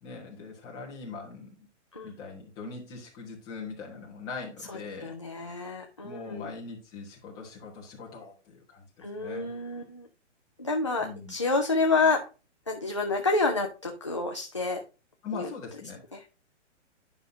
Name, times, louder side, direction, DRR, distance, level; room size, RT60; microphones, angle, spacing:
voice 1, 0.0-1.7 2.0-5.1 6.0-8.9 9.1-9.5 11.0-11.4 15.2-16.0, left 4 dB, 10° left, -3 dB, 1.1 m, -41 dB
voice 2, 4.7-6.5 9.0-10.1 10.6-12.3 12.7-14.8 15.3-15.5 16.1-16.3, left 3 dB, 25° left, 1 dB, 0.4 m, -29 dB
9.7 x 5.5 x 2.7 m, 0.31 s
hypercardioid pair, 170°, 37 cm